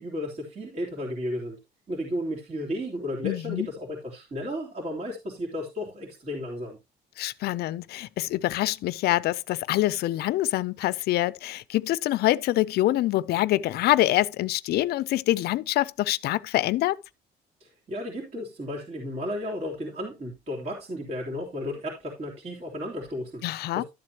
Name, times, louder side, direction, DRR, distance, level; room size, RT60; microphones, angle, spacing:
voice 1, 0.0-1.6 1.9-6.8 17.6-23.4 23.7-23.8, left 1 dB, 40° right, 3.2 m, -33 dB
voice 2, 3.2-3.7 7.2-17.0 23.4-23.8, left 15 dB, 70° left, 0.5 m, -25 dB
12.5 x 7.6 x 2.9 m
cardioid pair, 110°, 17 cm